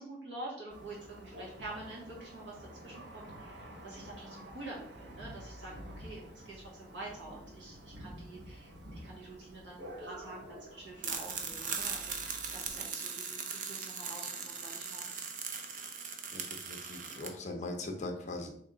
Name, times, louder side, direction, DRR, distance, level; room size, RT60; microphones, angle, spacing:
voice 1, 0.0-15.1, right 2 dB, 80° right, -4 dB, 1.6 m, -47 dB
Thunder, 0.7-12.9, equal, 65° right, 0.9 m, -50 dB
sound 1, 11.0-17.3, right 6 dB, 45° right, 0.5 m, -39 dB
voice 2, 16.3-18.5, left 2 dB, 40° left, 3 dB, 0.6 m, -40 dB
3.3 x 3.2 x 3.8 m, 0.65 s
head